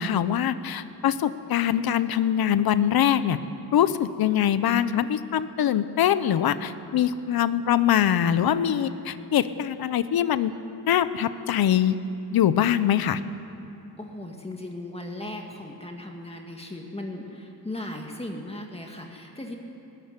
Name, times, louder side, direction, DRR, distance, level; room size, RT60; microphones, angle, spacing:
voice 1, 0.0-3.4 3.7-10.5 10.9-12.0 12.3-13.2, left 10 dB, 70° left, 13 dB, 0.9 m, -23 dB
voice 2, 14.0-19.6, left 1 dB, 15° left, 2 dB, 1.9 m, -37 dB
20.0 x 17.0 x 9.9 m, 2.8 s
wide cardioid pair, 130°, 38 cm